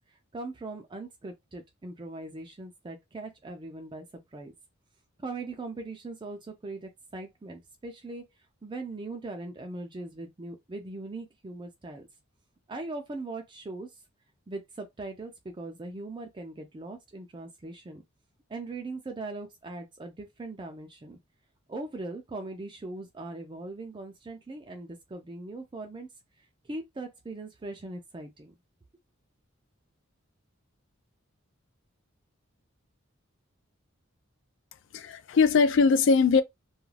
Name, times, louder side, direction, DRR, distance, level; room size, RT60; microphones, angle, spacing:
voice 1, 0.3-4.5 5.2-8.2 8.6-12.1 12.7-14.0 14.5-18.0 18.5-21.2 21.7-26.1 26.7-28.5, right 2 dB, 20° right, 0.3 m, -40 dB
voice 2, 34.9-36.4, left 5 dB, 60° left, 0.4 m, -21 dB
2.4 x 2.2 x 3.2 m
head